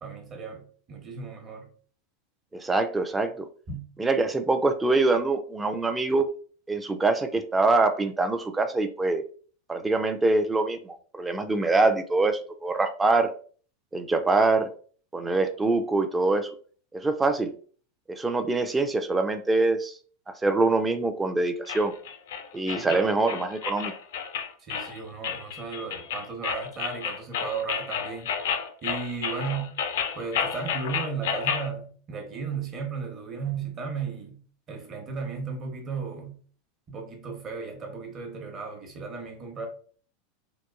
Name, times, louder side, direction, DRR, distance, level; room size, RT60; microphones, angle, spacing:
voice 1, 0.0-1.7 3.7-3.9 22.7-23.1 24.6-28.3 28.8-29.7 30.1-34.4 34.7-36.4 36.9-39.7, right 5 dB, 35° right, 0.9 m, -35 dB
voice 2, 2.5-3.5 4.0-6.3 6.7-9.2 9.7-13.3 13.9-14.7 15.1-16.5 16.9-17.5 18.1-20.0 20.3-21.9 22.5-23.9, right 3 dB, 15° right, 0.3 m, -24 dB
sound 1, 21.7-31.7, left 7 dB, 75° left, 0.4 m, -31 dB
2.8 x 2.2 x 2.3 m
hypercardioid pair, 115°, 0 cm